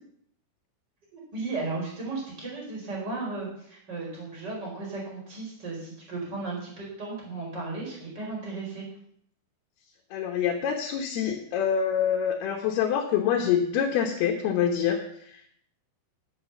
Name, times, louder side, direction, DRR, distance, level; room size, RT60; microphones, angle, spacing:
voice 1, 1.1-8.9, right 3 dB, 20° right, -3 dB, 4.9 m, -35 dB
voice 2, 10.1-15.5, left 8 dB, 70° left, 2 dB, 2.7 m, -26 dB
11.0 x 8.7 x 7.0 m, 0.65 s
omnidirectional pair, 5.5 m